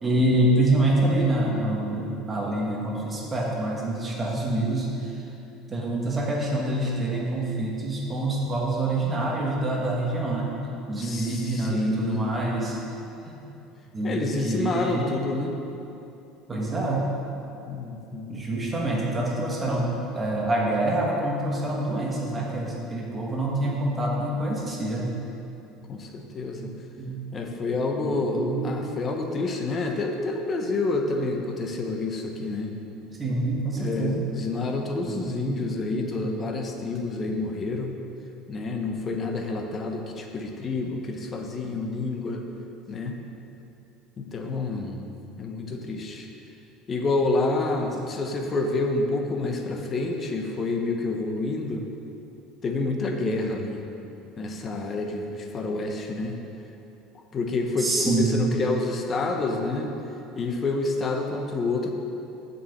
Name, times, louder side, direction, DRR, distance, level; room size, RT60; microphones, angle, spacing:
voice 1, 0.0-5.2 5.7-10.6 10.9-12.8 13.3-13.4 13.9-15.1 16.5-17.1 18.3-25.2 26.5-26.6 27.0-27.2 28.0-28.8 33.0-34.3 35.1-35.7 36.0-36.6 47.8-48.1 57.8-58.5, right 2 dB, 20° right, -3 dB, 1.5 m, -26 dB
voice 2, 11.0-12.3 14.0-15.6 17.6-18.4 25.9-26.7 27.3-32.7 33.8-37.9 38.5-42.4 42.9-43.2 44.2-45.1 45.4-46.3 46.9-51.8 52.6-53.9 54.4-56.4 57.3-59.9 60.4-61.9, left 3 dB, 30° left, 3 dB, 0.9 m, -28 dB
7.0 x 5.6 x 7.1 m, 2.9 s
cardioid pair, 135°, 0 cm